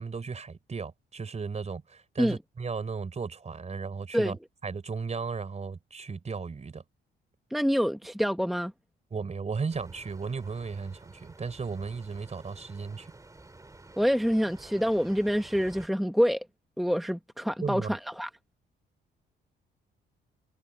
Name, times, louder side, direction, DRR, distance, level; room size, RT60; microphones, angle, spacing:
voice 1, 0.0-4.4 4.6-6.8 9.1-13.1 17.6-17.9, right 5 dB, 35° right, 4.0 m, -35 dB
voice 2, 7.5-8.7 14.0-16.4 16.8-18.3, equal, ahead, 1.1 m, -26 dB
sound 1, 9.7-15.9, right 2 dB, 15° right, 2.9 m, -51 dB
cardioid pair, 90°, 20 cm